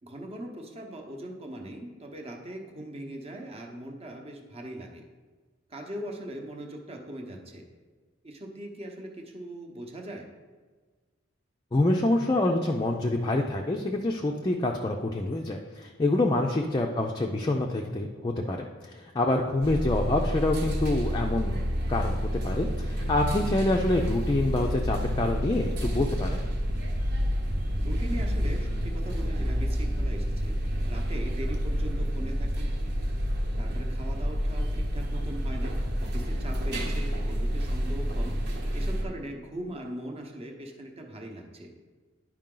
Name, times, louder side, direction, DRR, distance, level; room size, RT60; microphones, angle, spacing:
voice 1, 0.0-5.0 5.7-7.6 8.2-10.3 16.2-16.4 23.5-23.7 27.8-30.5 30.8-32.7 33.6-38.4 38.7-41.7, right 1 dB, 30° right, 2 dB, 0.9 m, -40 dB
voice 2, 11.7-21.6 21.9-26.4, left 2 dB, 20° left, 1 dB, 0.4 m, -26 dB
sound 1, 19.6-39.0, equal, 55° right, 1.1 m, -29 dB
10.5 x 4.8 x 3.8 m, 1.4 s
head